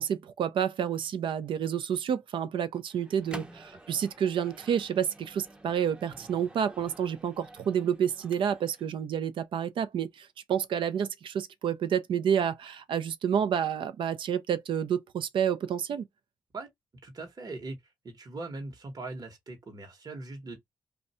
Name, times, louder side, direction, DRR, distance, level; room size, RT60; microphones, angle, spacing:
voice 1, 0.0-16.0, right 8 dB, 75° right, 0.5 m, -29 dB
Microwave oven, 2.9-8.9, right 2 dB, 10° right, 0.6 m, -47 dB
voice 2, 17.0-17.8 18.0-20.6, right 3 dB, 45° right, 1.0 m, -40 dB
2.6 x 2.2 x 4.1 m
cardioid pair, 65°, 9 cm